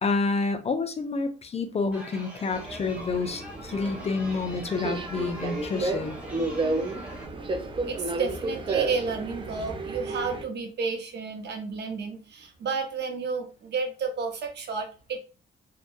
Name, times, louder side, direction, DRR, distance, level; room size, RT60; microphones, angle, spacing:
voice 1, 0.0-6.2, left 4 dB, 30° left, 0.4 m, -29 dB
Chatter, 1.9-7.2, equal, 5° right, 1.1 m, -43 dB
Subway metro underground, 2.5-10.4, right 2 dB, 25° right, 0.4 m, -32 dB
voice 2, 7.9-15.2, right 5 dB, 60° right, 0.7 m, -31 dB
2.7 x 2.2 x 2.4 m
cardioid pair, 90°, 20 cm